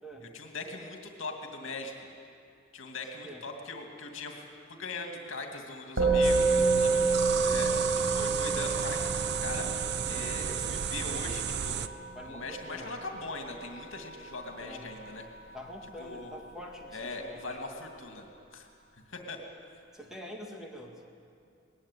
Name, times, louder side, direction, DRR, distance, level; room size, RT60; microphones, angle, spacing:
voice 1, 0.2-2.0 2.7-4.4 4.7-7.7 8.1-9.7 10.0-11.8 12.2-15.3 16.0-16.4 16.9-18.3 18.5-18.7 19.1-19.4, left 3 dB, 65° left, 3 dB, 2.4 m, -40 dB
Musical instrument, 6.0-15.5, right 3 dB, 70° right, 5.2 m, -29 dB
sound 1, 6.2-11.9, right 7 dB, 55° right, 0.6 m, -33 dB
voice 2, 12.1-12.9 14.6-14.9 15.5-17.6 19.9-21.1, equal, 5° right, 0 dB, 2.0 m, -45 dB
19.5 x 16.0 x 9.9 m, 2.4 s
head